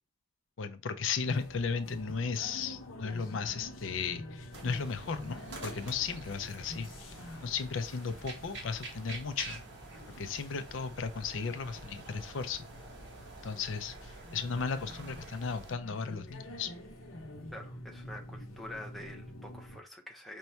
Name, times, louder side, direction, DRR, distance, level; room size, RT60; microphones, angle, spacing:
voice 1, 0.6-7.2 7.4-9.6 10.2-12.7 13.4-16.7, left 5 dB, 70° left, 0.5 m, -35 dB
sound 1, 1.2-19.8, left 1 dB, 90° left, 0.9 m, -48 dB
sound 2, 4.5-15.7, right 2 dB, 55° right, 1.4 m, -48 dB
voice 2, 17.5-20.4, left 1 dB, ahead, 0.7 m, -46 dB
5.3 x 2.3 x 4.4 m
head